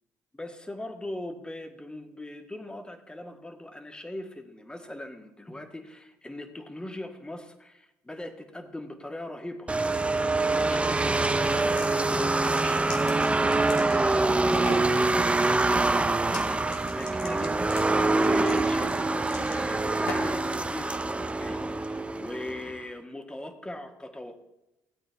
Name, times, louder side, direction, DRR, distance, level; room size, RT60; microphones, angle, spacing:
voice 1, 0.3-9.7 10.5-24.4, left 1 dB, 10° left, 5 dB, 1.7 m, -40 dB
sound 1, 9.7-22.7, right 2 dB, 15° right, 0.7 m, -25 dB
sound 2, 11.6-11.9 12.3-14.2 14.5-14.9 16.2-16.4 16.7-20.4, left 4 dB, 90° left, 1.9 m, -40 dB
16.5 x 8.8 x 3.5 m, 0.93 s
supercardioid pair, 70°, 7 cm